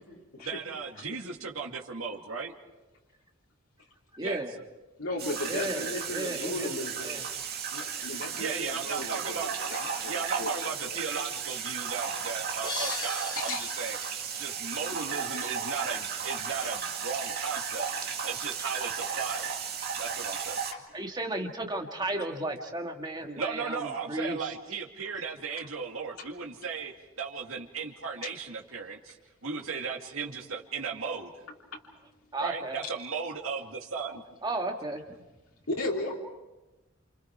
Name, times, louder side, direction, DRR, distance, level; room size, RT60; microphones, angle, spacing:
voice 1, 0.4-2.5 4.2-4.4 8.4-14.0 14.4-19.5 20.0-20.6 23.4-29.2 29.4-31.4 32.4-34.2, right 5 dB, 75° right, 0 dB, 2.4 m, -36 dB
voice 2, 4.1-4.5 5.4-7.3 20.9-24.5 32.3-32.8 34.4-35.0, right 2 dB, 20° right, 3 dB, 1.9 m, -34 dB
voice 3, 5.0-7.2 7.7-10.6 10.8-11.0 13.3-13.7 20.7-20.8 28.2-28.3 35.8-36.1, left 2 dB, 85° left, -3 dB, 3.3 m, -36 dB
sound 1, 5.2-20.7, right 6 dB, 50° right, 2.1 m, -34 dB
sound 2, 12.6-15.4, left 3 dB, 20° left, 2.7 m, -40 dB
28.5 x 28.0 x 4.7 m, 1.1 s
head